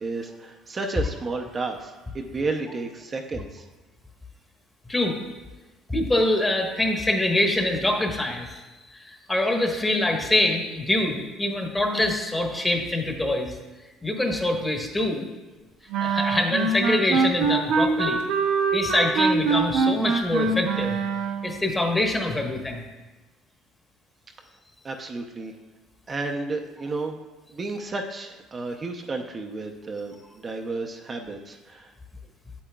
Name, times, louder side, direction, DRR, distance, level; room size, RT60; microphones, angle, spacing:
voice 1, 0.0-3.6 24.8-25.5 26.1-27.2 27.5-31.9, right 3 dB, 30° right, 3 dB, 0.6 m, -32 dB
voice 2, 5.9-8.6 8.9-13.6 14.0-15.3 16.0-18.2 18.7-21.0 21.4-22.9, left 1 dB, 15° left, 2 dB, 1.1 m, -24 dB
sound 1, 15.9-21.6, right 4 dB, 75° right, 0.9 m, -24 dB
8.5 x 7.9 x 2.3 m, 1.2 s
supercardioid pair, 90°, 0 cm